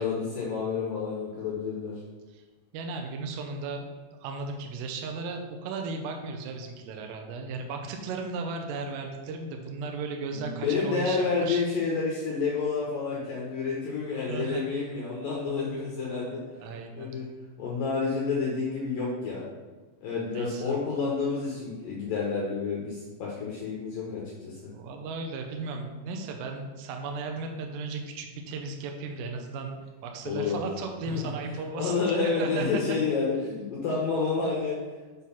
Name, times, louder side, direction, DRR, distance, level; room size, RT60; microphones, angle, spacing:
voice 1, 0.0-1.9 10.3-16.4 17.0-17.3 17.6-19.4 20.0-24.6 30.3-30.7 31.1-31.3 31.7-34.8, left 4 dB, 70° left, -4 dB, 2.1 m, -29 dB
voice 2, 2.7-3.9 4.2-11.6 14.3-14.7 16.6-17.1 20.3-20.8 24.7-31.9 32.4-32.7, right 4 dB, 75° right, 3 dB, 2.7 m, -36 dB
7.4 x 4.0 x 5.7 m, 1.3 s
omnidirectional pair, 5.3 m